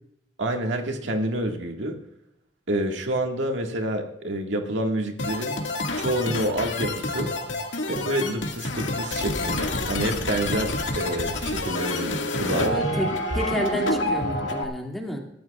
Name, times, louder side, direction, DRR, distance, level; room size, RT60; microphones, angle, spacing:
voice 1, 0.4-2.0 2.7-5.6 6.0-7.3 7.9-12.7, right 1 dB, 85° right, 3 dB, 1.8 m, -28 dB
sound 1, 5.2-14.6, left 2 dB, 90° left, 2.0 m, -28 dB
voice 2, 12.5-15.2, equal, ahead, 0 dB, 2.3 m, -30 dB
21.0 x 14.0 x 2.4 m, 0.77 s
head